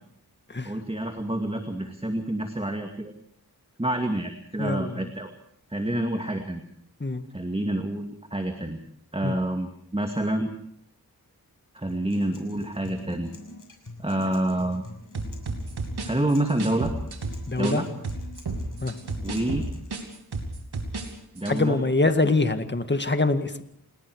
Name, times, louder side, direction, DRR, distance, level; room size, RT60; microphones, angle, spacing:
voice 1, 0.7-3.1 3.8-5.3 5.7-6.6 7.3-8.8 9.1-10.5 11.7-13.3 14.0-14.8 16.0-16.9 17.6-17.9 19.2-19.7 21.3-21.8, right 1 dB, 15° right, 5 dB, 2.3 m, -28 dB
voice 2, 4.6-5.0 7.0-7.2 9.2-9.3 17.5-17.8 18.8-18.9 21.5-23.6, left 2 dB, 30° left, 9 dB, 1.9 m, -24 dB
Acoustic guitar, 11.9-19.9, left 2 dB, 55° left, 6.0 m, -45 dB
sound 1, 15.1-17.8 18.0-21.1 21.4-21.6, right 3 dB, 85° right, 3.1 m, -32 dB
28.5 x 19.5 x 4.9 m, 0.70 s
cardioid pair, 50°, 38 cm